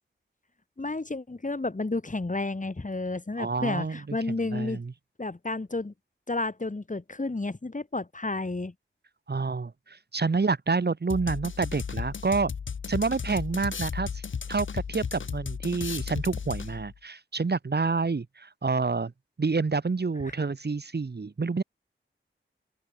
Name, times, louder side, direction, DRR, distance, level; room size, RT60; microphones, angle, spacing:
voice 1, 0.8-4.8 5.2-5.9 6.3-8.7, left 2 dB, 35° left, 4.2 m, -31 dB
voice 2, 3.4-4.2 4.5-4.9 9.3-12.5 12.9-14.2 14.5-19.1 19.4-21.6, right 4 dB, 50° right, 1.5 m, -28 dB
sound 1, 11.1-17.0, left 6 dB, 70° left, 0.8 m, -34 dB
open air
wide cardioid pair, 70°, 21 cm